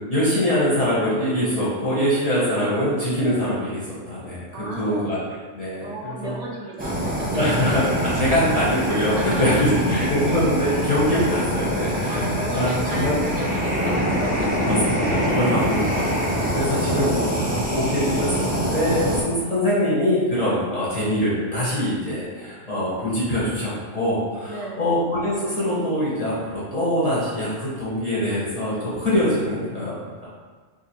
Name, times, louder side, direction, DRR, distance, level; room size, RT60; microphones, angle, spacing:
voice 1, 0.1-4.4 4.7-5.2 5.5-6.4 7.3-13.2 13.8-13.9 14.6-30.3, equal, 35° left, -8 dB, 0.8 m, -23 dB
voice 2, 4.5-5.1 5.8-7.3 9.2-9.6 12.1-14.6 16.9-17.2 24.5-24.9, right 2 dB, 85° right, -3 dB, 1.1 m, -35 dB
Fire, 6.8-19.2, equal, 10° right, 0.4 m, -24 dB
2.6 x 2.6 x 4.2 m, 1.5 s
omnidirectional pair, 1.2 m